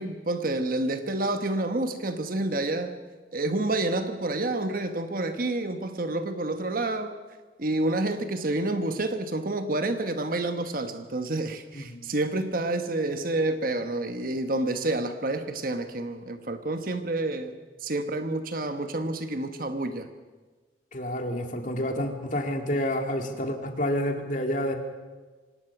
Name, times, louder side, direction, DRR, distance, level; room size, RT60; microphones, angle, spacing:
voice 1, 0.0-3.0 3.3-7.1 7.6-20.1, right 2 dB, 50° right, 8 dB, 1.2 m, -29 dB
voice 2, 20.9-24.7, left 1 dB, 45° left, 4 dB, 2.4 m, -29 dB
25.5 x 18.0 x 6.0 m, 1.3 s
head